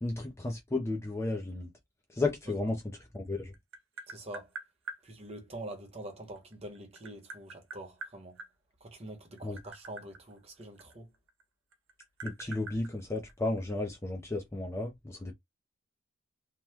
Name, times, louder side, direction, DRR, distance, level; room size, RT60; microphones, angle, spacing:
voice 1, 0.0-1.7 2.1-3.5 9.4-9.6 12.2-15.3, left 2 dB, 15° left, 0.4 m, -33 dB
Tap, 3.2-5.0 6.4-8.5 9.3-11.4 11.7-13.7, right 3 dB, 70° right, 0.7 m, -45 dB
voice 2, 4.1-4.5 5.0-8.4 8.8-11.1, right 1 dB, 30° right, 1.0 m, -45 dB
2.9 x 2.2 x 3.4 m
head